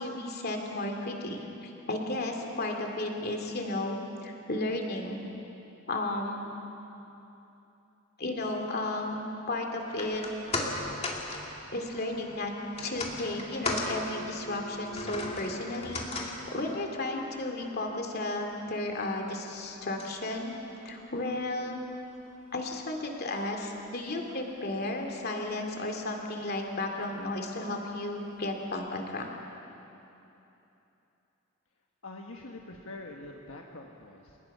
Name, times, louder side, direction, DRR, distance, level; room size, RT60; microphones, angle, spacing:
voice 1, 0.0-5.3 5.9-6.5 8.2-10.2 11.7-12.5 12.8-20.5 20.8-21.8 22.5-29.3, left 2 dB, 50° left, 2 dB, 2.6 m, -34 dB
sound 1, 9.8-22.2 22.5-22.6, left 2 dB, 30° left, 2.3 m, -39 dB
voice 2, 32.0-34.4, left 2 dB, 70° left, 1 dB, 1.4 m, -44 dB
29.0 x 19.0 x 5.5 m, 3.0 s
head